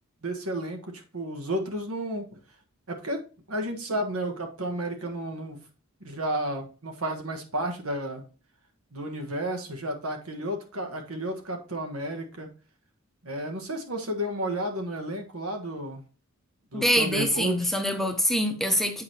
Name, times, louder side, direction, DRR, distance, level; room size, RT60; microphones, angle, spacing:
voice 1, 0.2-2.4 2.9-3.2 3.5-5.6 6.0-8.2 8.9-12.5 13.2-16.0 16.7-17.7, right 1 dB, 80° right, 1.4 m, -32 dB
voice 2, 16.7-19.0, equal, ahead, 0.6 m, -25 dB
8.4 x 4.8 x 2.8 m
head